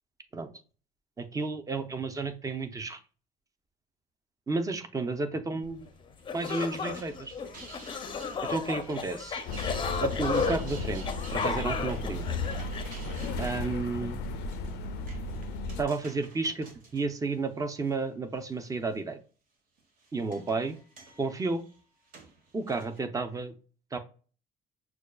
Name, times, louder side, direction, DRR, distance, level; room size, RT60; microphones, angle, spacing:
voice 1, 1.2-3.0 4.5-5.9 6.3-7.3 8.4-9.4 10.0-11.0 11.3-12.2 13.4-14.2 15.8-16.7 16.9-19.2 20.1-20.8 21.2-21.6 22.5-23.5 23.9-24.0, right 3 dB, 20° right, 8 dB, 0.6 m, -32 dB
sound 1, 5.9-6.0 6.3-13.4, left 5 dB, 30° left, 0.5 m, -34 dB
sound 2, 6.2-18.0 18.4-19.0 19.8-23.0, right 3 dB, 55° right, 1.1 m, -52 dB
sound 3, 9.5-15.9, left 3 dB, 85° left, 0.4 m, -35 dB
6.1 x 2.3 x 2.2 m, 0.37 s
cardioid pair, 110°, 17 cm